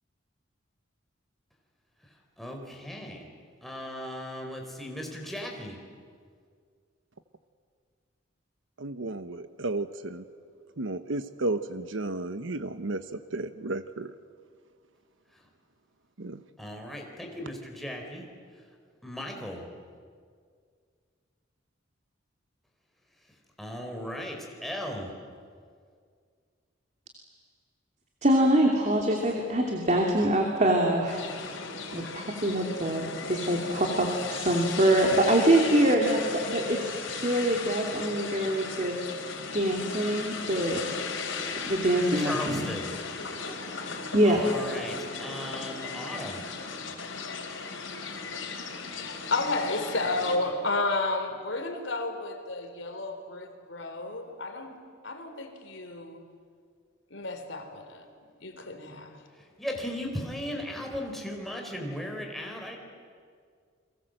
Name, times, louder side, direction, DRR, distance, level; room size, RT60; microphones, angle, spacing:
voice 1, 2.4-3.3 3.6-5.8 16.6-18.2 19.0-19.7 23.6-25.1 42.2-42.9 44.2-46.4 59.6-62.8, left 1 dB, ahead, 1 dB, 4.2 m, -36 dB
voice 2, 8.8-10.2 10.8-14.1 16.2-16.4, right 2 dB, 80° right, 11 dB, 1.0 m, -33 dB
voice 3, 28.2-31.2 31.9-39.0 39.5-40.9 41.6-42.7 44.1-44.5, right 1 dB, 35° right, 1 dB, 2.8 m, -24 dB
sound 1, 31.1-50.4, left 5 dB, 90° left, 4.0 m, -37 dB
voice 4, 49.3-54.8 55.0-56.2 57.1-58.1 58.4-59.2, left 2 dB, 70° left, 6 dB, 3.7 m, -32 dB
30.0 x 23.5 x 7.8 m, 2.1 s
head